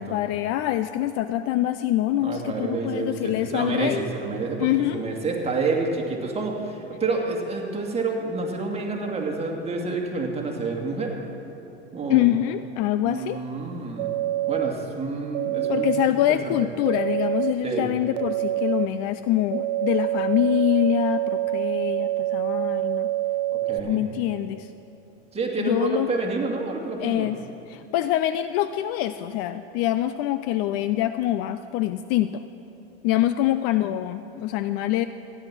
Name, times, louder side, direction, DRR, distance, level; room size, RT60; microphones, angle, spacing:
voice 1, 0.0-4.0 4.6-5.0 12.1-13.4 15.7-23.1 23.8-24.7 25.6-26.1 27.0-27.4 27.7-32.5 33.0-35.1, left 13 dB, 45° left, 12 dB, 0.4 m, -25 dB
voice 2, 2.2-11.2 11.9-12.2 13.0-14.1 14.5-15.9 16.3-16.7 17.6-17.9 23.7-24.0 25.3-27.3, right 3 dB, 20° right, 0 dB, 2.1 m, -28 dB
sound 1, 14.0-14.7 15.3-16.1 16.9-17.5 18.1-18.9 19.5-23.8, right 14 dB, 60° right, 0.7 m, -26 dB
14.5 x 10.0 x 6.0 m, 2.9 s
hypercardioid pair, 105°, 33 cm